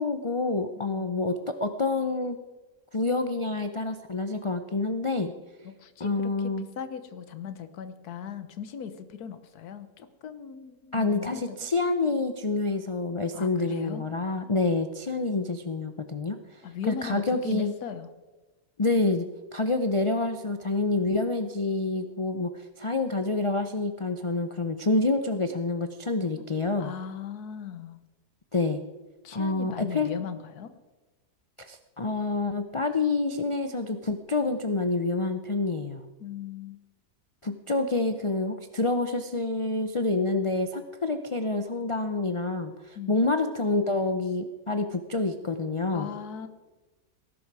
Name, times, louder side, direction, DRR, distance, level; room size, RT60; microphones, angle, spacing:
voice 1, 0.0-2.4 2.9-5.3 6.0-6.7 10.9-16.4 16.9-17.7 18.8-19.3 19.5-26.9 28.5-28.8 29.3-30.1 31.6-36.0 37.4-46.1, left 3 dB, 50° left, 8 dB, 0.3 m, -27 dB
voice 2, 0.8-1.3 5.6-11.7 13.3-14.0 16.6-18.1 26.4-26.5 26.8-28.0 29.2-30.7 36.2-36.8 42.9-43.2 45.9-46.5, left 8 dB, 75° left, 11 dB, 1.5 m, -38 dB
19.0 x 11.0 x 4.8 m, 1.2 s
omnidirectional pair, 1.7 m